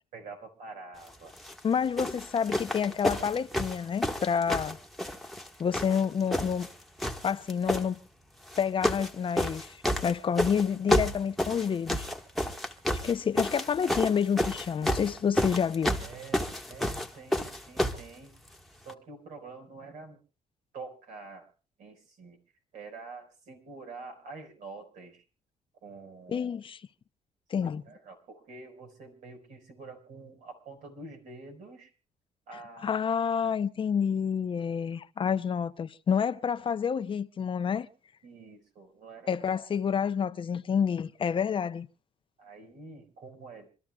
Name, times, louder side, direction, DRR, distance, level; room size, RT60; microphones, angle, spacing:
voice 1, 0.1-1.4 16.0-18.3 18.8-20.2 20.7-21.5 21.8-22.4 22.7-25.2 25.8-26.4 27.9-31.9 32.5-33.0 38.2-39.3 42.4-43.7, right 3 dB, 75° right, 4.7 m, -46 dB
sound 1, 1.3-1.6 2.0-5.5 5.7-6.7 7.0-7.8 8.5-9.1 9.4-18.1 18.9-19.0, left 1 dB, ahead, 1.3 m, -30 dB
voice 2, 1.6-4.8 5.6-6.7 7.2-8.0 8.6-12.1 13.0-15.9 26.3-26.8 27.5-27.8 32.8-37.9 39.3-41.9, left 7 dB, 40° left, 0.7 m, -28 dB
27.0 x 13.0 x 2.3 m
cardioid pair, 100°, 13 cm